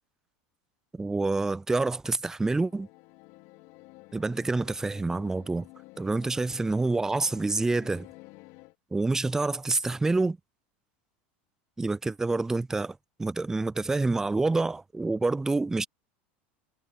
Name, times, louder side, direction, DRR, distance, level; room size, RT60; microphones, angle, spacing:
voice 1, 0.9-2.9 4.1-5.7 6.0-8.1 8.9-10.4 11.8-15.9, right 3 dB, 10° right, 0.3 m, -27 dB
sound 1, 2.4-8.8, left 23 dB, 60° left, 3.3 m, -51 dB
supercardioid pair, 120°, 6 cm